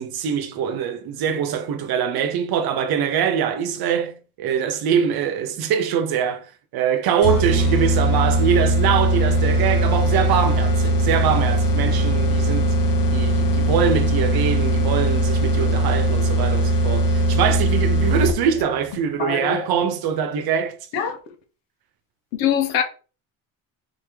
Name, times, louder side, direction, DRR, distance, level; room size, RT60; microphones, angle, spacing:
voice 1, 0.0-12.7 13.1-20.8, right 8 dB, 60° right, 1.0 m, -23 dB
sound 1, 7.2-18.6, right 1 dB, 50° left, 1.2 m, -20 dB
voice 2, 19.2-19.7 20.9-21.2 22.3-22.8, left 8 dB, 80° left, 1.2 m, -23 dB
3.9 x 3.6 x 3.5 m
supercardioid pair, 80°, 43 cm